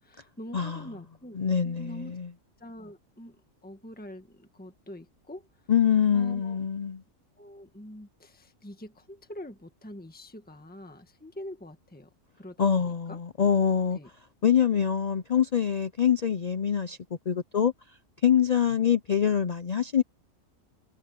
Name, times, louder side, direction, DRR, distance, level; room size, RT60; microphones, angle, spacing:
voice 1, 0.0-1.4 1.6-2.2 2.6-5.7 6.1-6.6 7.4-12.1 12.4-13.2 13.9-14.1, left 1 dB, 5° left, 1.6 m, -45 dB
voice 2, 1.4-2.3 5.7-7.0 12.6-14.0 14.4-17.0 17.3-17.7 18.2-20.0, left 8 dB, 55° left, 0.4 m, -24 dB
omnidirectional pair, 1.4 m